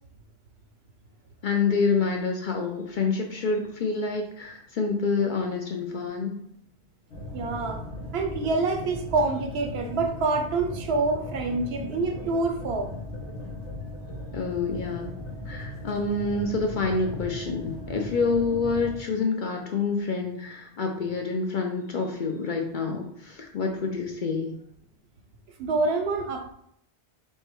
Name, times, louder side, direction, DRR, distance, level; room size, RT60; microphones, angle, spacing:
voice 1, 1.4-6.4 14.3-15.1 15.5-24.5, left 4 dB, 55° left, 2 dB, 0.6 m, -27 dB
sound 1, 7.1-19.0, left 1 dB, 90° left, 1.1 m, -38 dB
voice 2, 7.3-7.8 8.1-12.9 25.6-26.5, right 3 dB, 70° right, 5 dB, 0.8 m, -26 dB
5.4 x 2.1 x 3.0 m, 0.71 s
omnidirectional pair, 1.1 m